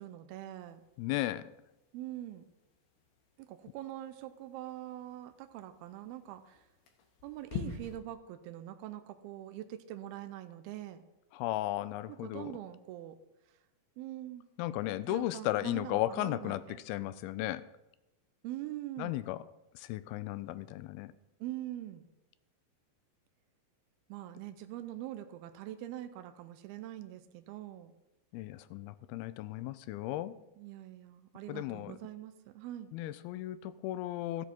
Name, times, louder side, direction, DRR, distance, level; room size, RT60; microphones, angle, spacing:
voice 1, 0.0-0.8 1.9-2.5 3.4-6.6 7.2-11.0 12.1-13.2 14.0-14.5 15.0-16.8 18.4-19.2 21.4-22.0 24.1-27.9 30.6-32.9, right 13 dB, 85° right, 9 dB, 2.5 m, -43 dB
sound 1, 0.6-8.0, left 6 dB, 70° left, 3.0 m, -48 dB
voice 2, 1.0-1.5 11.3-12.5 14.6-17.7 19.0-19.4 19.7-21.1 28.3-30.3 31.5-32.0 32.9-34.5, left 15 dB, 85° left, 15 dB, 2.5 m, -35 dB
13.5 x 8.2 x 4.5 m, 0.97 s
omnidirectional pair, 4.4 m